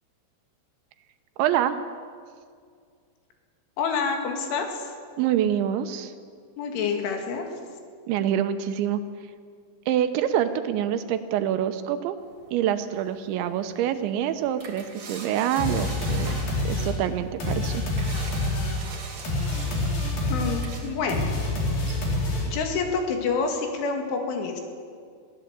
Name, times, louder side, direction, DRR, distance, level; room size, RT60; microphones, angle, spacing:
voice 1, 1.4-1.8 5.2-6.1 8.1-9.0 9.9-12.2 12.5-16.4 16.6-17.8, right 10 dB, 80° right, 10 dB, 3.1 m, -26 dB
voice 2, 3.8-4.9 6.6-7.5 20.3-21.4 22.5-24.6, left 5 dB, 80° left, 3 dB, 4.8 m, -27 dB
sound 1, 12.2-22.7, right 4 dB, 40° right, 3.3 m, -44 dB
sound 2, 15.6-22.8, left 2 dB, 50° left, 5.4 m, -27 dB
21.5 x 16.0 x 8.3 m, 2.1 s
omnidirectional pair, 5.4 m